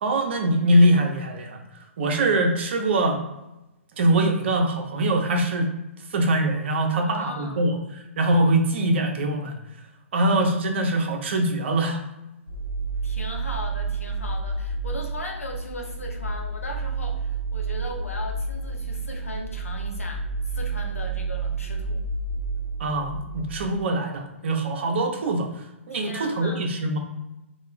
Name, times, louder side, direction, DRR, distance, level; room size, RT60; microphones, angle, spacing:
voice 1, 0.0-1.6 2.0-3.2 4.0-5.7 6.1-7.8 8.2-9.6 10.1-12.0 22.8-27.0, right 1 dB, 55° right, 3 dB, 0.6 m, -23 dB
voice 2, 7.0-7.7 13.0-22.0 25.9-26.7, left 2 dB, 90° left, 2 dB, 0.6 m, -38 dB
sound 1, 12.5-23.6, right 4 dB, 65° left, 0.9 m, -30 dB
2.2 x 2.2 x 3.1 m, 0.96 s
figure-of-eight pair, 125°, 7 cm